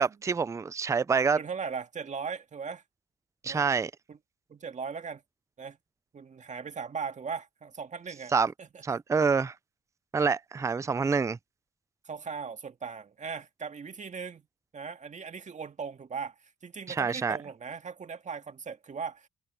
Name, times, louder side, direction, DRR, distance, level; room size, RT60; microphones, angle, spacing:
voice 1, 0.0-1.4 3.4-3.9 8.3-8.5 8.8-9.5 10.1-11.4 16.9-17.4, right 5 dB, 15° right, 0.4 m, -26 dB
voice 2, 1.3-2.8 3.5-3.6 4.1-4.2 4.5-5.2 5.6-5.8 6.1-8.3 8.6-9.0 12.0-14.4 14.7-19.3, right 5 dB, 40° right, 1.9 m, -38 dB
cardioid pair, 90°, 20 cm